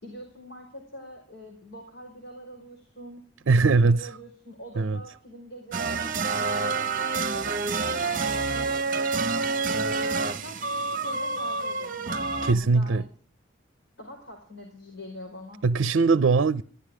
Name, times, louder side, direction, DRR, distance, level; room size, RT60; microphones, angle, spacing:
voice 1, 0.0-7.0 7.3-8.8 9.7-12.0 12.4-13.0 14.0-15.6, equal, 60° left, 5.1 m, -43 dB
voice 2, 3.5-4.1 4.8-5.0 12.4-13.0 15.6-16.6, right 4 dB, 75° right, 0.6 m, -21 dB
sound 1, 5.7-12.5, right 4 dB, 45° right, 0.8 m, -28 dB
15.0 x 12.0 x 4.9 m
head